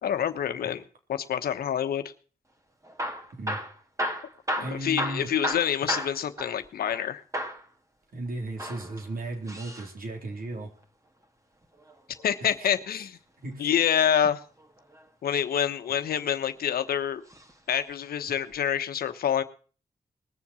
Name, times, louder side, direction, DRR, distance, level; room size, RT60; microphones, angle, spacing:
voice 1, 0.0-0.8 1.1-2.0 4.6-7.2 12.2-13.2 13.6-14.4 15.2-17.2 17.7-19.4, left 9 dB, 90° left, 10 dB, 1.1 m, -27 dB
Hammer / Drill, 2.8-7.1 7.3-7.7 8.5-9.9 11.6-12.9 14.6-15.0 15.8-16.6 17.3-17.5 17.8-17.9 18.5-18.6, equal, 20° right, 2.3 m, -34 dB
voice 2, 4.6-5.3 8.1-10.7 13.4-13.7, right 2 dB, 75° right, 2 dB, 3.9 m, -35 dB
20.5 x 7.3 x 6.3 m, 0.40 s
cardioid pair, 50°, 15 cm